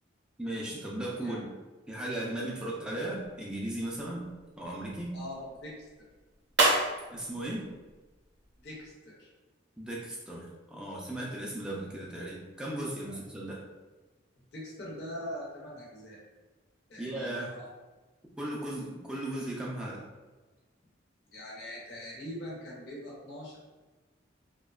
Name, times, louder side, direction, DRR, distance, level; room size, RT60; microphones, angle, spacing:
voice 1, 0.4-1.5 1.9-4.3 4.6-5.2 7.1-7.7 9.8-13.6 17.0-17.5 18.4-20.0, right 1 dB, 5° right, -4 dB, 0.3 m, -36 dB
sound 1, 2.9-8.9, right 2 dB, 65° right, 0.5 m, -34 dB
voice 2, 5.1-5.9 8.6-9.3 13.1-13.2 14.5-16.2 16.9-17.7 21.3-23.6, left 1 dB, 60° left, -5 dB, 0.6 m, -42 dB
2.6 x 2.1 x 2.3 m, 1.2 s
head